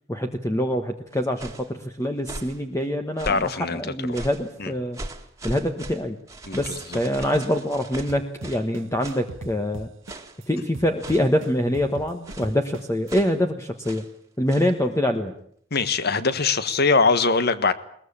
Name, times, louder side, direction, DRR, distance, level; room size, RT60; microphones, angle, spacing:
voice 1, 0.1-5.0 5.4-6.2 6.5-9.9 10.5-14.0 14.4-15.3, equal, 15° left, 5 dB, 1.3 m, -25 dB
sound 1, 1.1-1.7 2.2-2.6 3.2-3.6 4.1-4.5 4.9-8.7 9.0-9.3 10.0-10.4 11.0-11.4 12.2-12.6 13.1-13.4 13.8-14.1 14.5-14.7, right 2 dB, 15° right, 2.1 m, -39 dB
voice 2, 3.2-3.8 4.1-4.2 4.6-4.7 6.5-7.0 15.7-17.7, left 4 dB, 55° left, 13 dB, 1.5 m, -22 dB
sound 2, 8.1-10.4 10.7-13.1, right 2 dB, 80° right, 1.1 m, -39 dB
21.5 x 20.0 x 8.7 m, 0.64 s
head